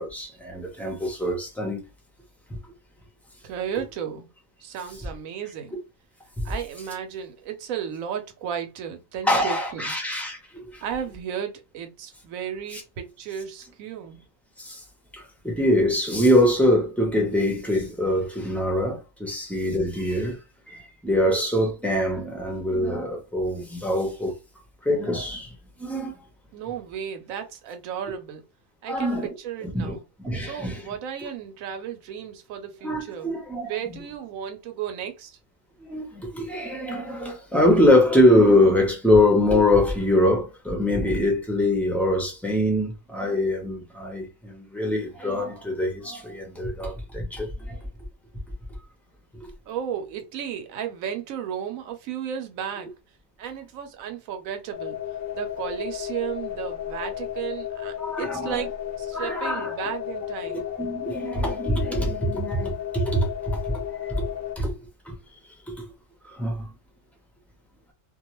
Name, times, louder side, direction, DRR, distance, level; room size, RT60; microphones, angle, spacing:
voice 1, 0.0-1.8 6.4-6.5 9.2-10.8 12.7-12.8 14.6-14.8 15.1-20.4 20.7-24.4 24.8-25.5 25.8-26.2 28.9-29.3 29.7-30.9 32.8-33.7 35.8-47.8 49.3-49.5 58.0-58.5 59.1-59.7 60.5-63.8 64.1-64.3 64.6-64.7 65.0-65.1 65.7-65.8 66.2-66.7, left 1 dB, ahead, 0.4 m, -23 dB
voice 2, 3.4-4.3 4.6-5.8 6.4-9.9 10.8-14.2 26.5-28.4 28.8-30.0 30.4-33.4 33.7-35.4 49.7-52.9 53.4-55.0 55.3-58.7 59.0-60.7, right 8 dB, 75° right, 1.0 m, -34 dB
sound 1, 54.7-64.5, left 11 dB, 60° left, 0.6 m, -33 dB
2.4 x 2.3 x 2.9 m
omnidirectional pair, 1.5 m